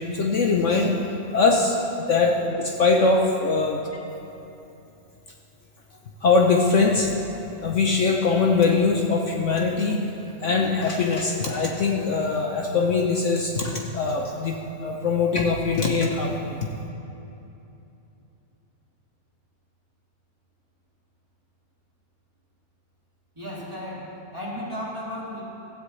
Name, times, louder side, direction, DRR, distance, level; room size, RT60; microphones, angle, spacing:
voice 1, 0.1-1.0 1.3-1.8 2.1-3.8 6.2-7.1 7.6-10.0 10.4-14.5 14.8-16.7, left 4 dB, 60° left, 1 dB, 1.2 m, -22 dB
voice 2, 23.3-25.4, equal, 20° right, -8 dB, 3.3 m, -34 dB
16.5 x 15.0 x 3.2 m, 2.9 s
omnidirectional pair, 1.5 m